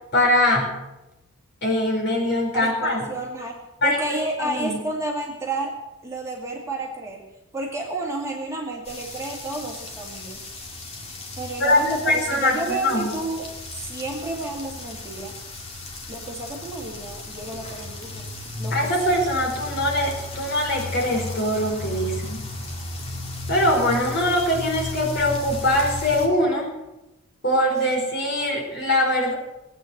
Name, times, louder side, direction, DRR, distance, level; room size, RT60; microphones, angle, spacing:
voice 1, 0.1-0.7 1.6-3.0 3.8-4.8 11.6-13.1 18.7-22.4 23.5-26.7 27.4-29.3, left 1 dB, 50° left, 0 dB, 5.0 m, -22 dB
voice 2, 2.5-5.7 6.0-7.2 7.5-10.5 11.4-15.3 16.1-18.3 18.6-18.9, right 2 dB, 15° right, -1 dB, 2.4 m, -31 dB
sound 1, 8.8-26.3, left 2 dB, 30° left, 2.4 m, -35 dB
19.0 x 9.0 x 7.9 m, 0.96 s
head